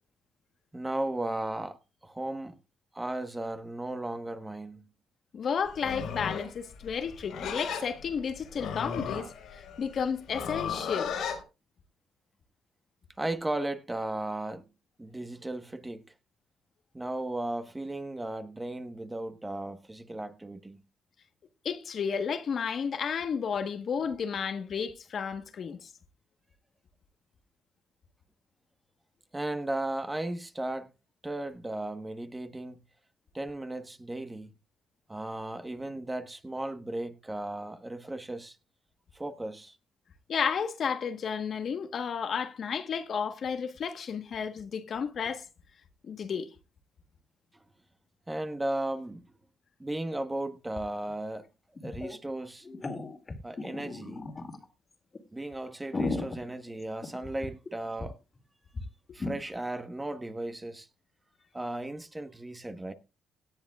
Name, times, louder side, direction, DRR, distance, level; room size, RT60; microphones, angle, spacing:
voice 1, 0.7-2.6 2.9-4.9 13.2-14.7 15.0-16.0 16.9-20.8 29.3-30.9 31.2-32.8 33.3-34.5 35.1-38.6 39.1-39.8 47.5-47.6 48.3-49.3 49.8-51.5 51.8-52.7 53.4-54.2 55.3-58.2 59.1-60.9 61.5-62.9, right 1 dB, 15° right, 1.2 m, -35 dB
voice 2, 5.3-11.1 21.6-25.9 40.3-45.4 46.0-46.5, left 6 dB, 55° left, 1.3 m, -32 dB
Livestock farm animals working animals, 5.7-11.4, left 6 dB, 75° left, 3.5 m, -36 dB
sound 1, 50.8-50.9 51.1-51.2 51.8-52.2 52.6-54.6 55.1-55.2 55.7-57.7 58.0-58.1 58.4-58.5 58.7-58.8 59.2-59.4, left 3 dB, 30° left, 2.3 m, -35 dB
17.5 x 10.5 x 2.4 m
cardioid pair, 90°, 0 cm